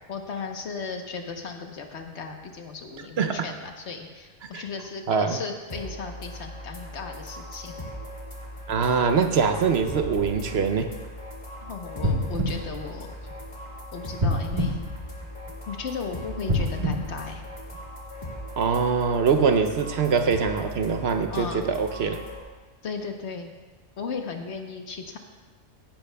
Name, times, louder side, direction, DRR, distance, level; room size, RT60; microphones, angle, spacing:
voice 1, 0.1-7.7 11.6-13.1 13.9-14.9 15.7-17.4 21.3-21.6 22.8-23.5 24.0-25.2, left 5 dB, 65° left, 4 dB, 1.2 m, -36 dB
voice 2, 5.1-5.4 8.7-10.9 18.6-22.2, right 5 dB, 60° right, 7 dB, 0.8 m, -23 dB
sound 1, 5.7-22.4, equal, 40° left, 1.9 m, -39 dB
sound 2, 9.7-15.1, equal, 85° left, 2.5 m, -47 dB
sound 3, 12.0-13.6 14.2-15.7 16.4-18.1 18.6-18.7, left 1 dB, 35° right, 1.5 m, -28 dB
16.5 x 10.0 x 2.2 m, 1.3 s
omnidirectional pair, 1.3 m